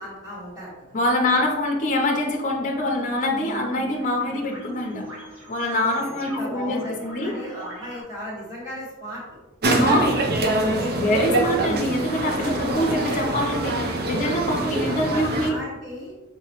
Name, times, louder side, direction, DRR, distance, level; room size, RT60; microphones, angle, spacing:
voice 1, 0.0-1.0 1.3-1.4 6.0-9.2 9.6-10.0 10.6-11.2 12.4-13.0 14.2-14.4 14.9-16.1, equal, 15° right, -9 dB, 1.4 m, -36 dB
voice 2, 0.9-5.0 5.5-7.3 9.8-10.1 10.6-15.6, left 1 dB, 35° left, 1 dB, 0.6 m, -25 dB
sound 1, 2.5-8.0, equal, 80° right, 1.4 m, -40 dB
sound 2, 9.6-15.5, right 2 dB, 45° right, 0.5 m, -24 dB
5.1 x 2.9 x 2.9 m, 1.0 s
head